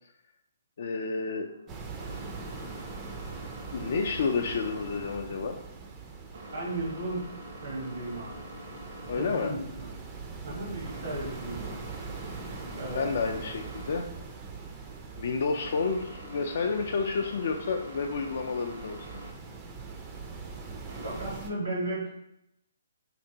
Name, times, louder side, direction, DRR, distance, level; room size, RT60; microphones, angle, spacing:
voice 1, 0.8-1.5 3.7-5.6 9.1-9.5 12.6-14.1 15.2-19.0, left 4 dB, 60° left, 2 dB, 0.3 m, -30 dB
sound 1, 1.4-21.3, equal, 65° right, 0.8 m, -46 dB
sound 2, 1.7-21.5, right 4 dB, 20° right, 0.4 m, -43 dB
voice 2, 6.5-7.2 7.6-8.4 9.2-9.9 10.4-11.8 12.7-13.4 21.0-22.1, right 2 dB, 80° right, -5 dB, 1.2 m, -35 dB
3.3 x 2.6 x 2.8 m, 0.80 s
hypercardioid pair, 145°, 0 cm